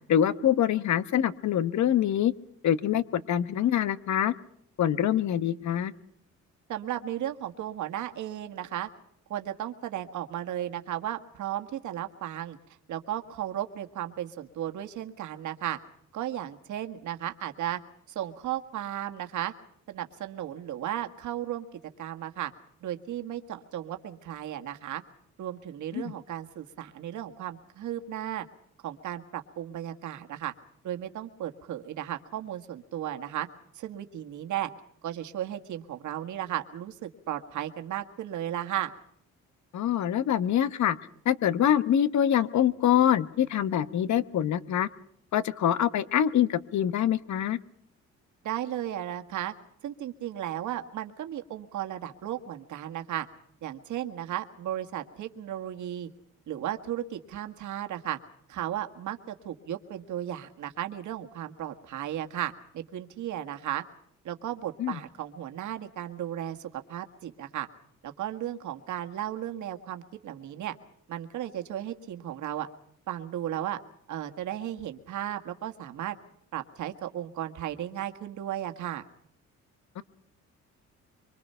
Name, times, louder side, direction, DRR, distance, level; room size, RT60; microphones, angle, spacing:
voice 1, 0.1-2.3 2.6-4.3 4.8-5.9 25.9-26.1 39.7-41.0 41.2-44.9 45.3-47.6 64.8-65.0 80.0-80.1, left 10 dB, 70° left, 14 dB, 1.3 m, -25 dB
voice 2, 6.7-8.9 9.3-12.6 12.9-15.8 16.1-17.8 18.1-19.5 19.9-21.7 22.0-22.5 22.8-25.0 25.4-28.5 28.8-30.5 30.8-33.5 33.8-34.7 35.0-38.9 48.4-49.5 49.8-53.3 53.6-56.1 56.5-58.2 58.5-63.8 64.2-67.7 68.0-70.7 71.1-72.7 73.1-73.8 74.1-76.2 76.5-79.0, right 12 dB, 75° right, 6 dB, 1.8 m, -35 dB
25.0 x 24.0 x 5.7 m, 0.70 s
cardioid pair, 90°, 30 cm